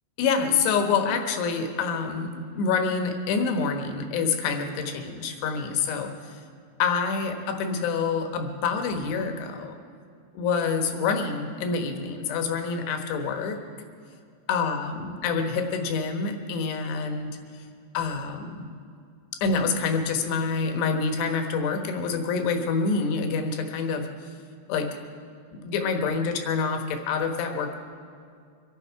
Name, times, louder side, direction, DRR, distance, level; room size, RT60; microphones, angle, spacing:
voice 1, 0.2-6.4 6.8-9.7 10.3-13.6 14.5-17.6 17.9-18.7 19.4-24.1 24.7-24.9 25.5-27.8, left 5 dB, 80° left, 5 dB, 3.4 m, -27 dB
24.5 x 12.0 x 4.7 m, 2.3 s
omnidirectional pair, 4.9 m